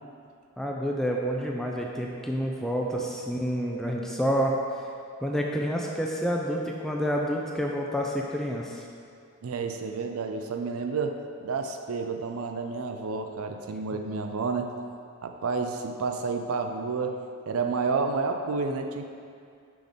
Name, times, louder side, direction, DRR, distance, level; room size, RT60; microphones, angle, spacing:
voice 1, 0.6-4.6 5.2-8.8, equal, ahead, -1 dB, 0.3 m, -28 dB
voice 2, 9.4-14.7 15.2-17.2 17.5-19.0, right 4 dB, 75° right, 5 dB, 0.5 m, -30 dB
6.0 x 3.6 x 5.1 m, 2.3 s
head